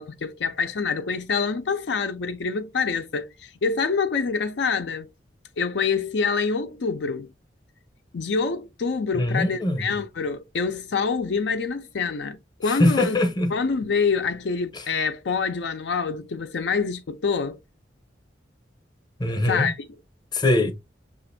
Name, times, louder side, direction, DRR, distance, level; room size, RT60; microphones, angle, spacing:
voice 1, 0.0-5.1 5.6-7.3 8.1-13.2 13.5-17.6 19.4-19.8, left 5 dB, 70° left, 0.5 m, -26 dB
voice 2, 9.2-9.9 12.7-13.5 19.2-19.7 20.3-20.7, left 1 dB, 25° left, 0.7 m, -22 dB
5.8 x 2.5 x 2.6 m
head